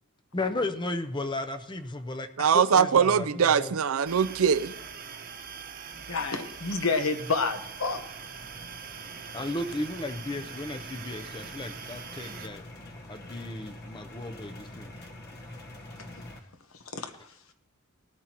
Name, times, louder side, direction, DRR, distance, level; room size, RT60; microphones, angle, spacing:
voice 1, 0.3-3.7 9.3-12.6 13.1-14.9, left 2 dB, 20° left, 0.6 m, -34 dB
voice 2, 2.4-4.7, right 7 dB, 80° right, 0.5 m, -22 dB
sound 1, 4.1-12.5, right 6 dB, 45° right, 1.0 m, -43 dB
voice 3, 6.0-8.0 16.9-17.1, left 4 dB, 75° left, 1.1 m, -29 dB
sound 2, 7.4-16.4, left 1 dB, 50° left, 1.3 m, -46 dB
19.0 x 13.0 x 3.0 m
head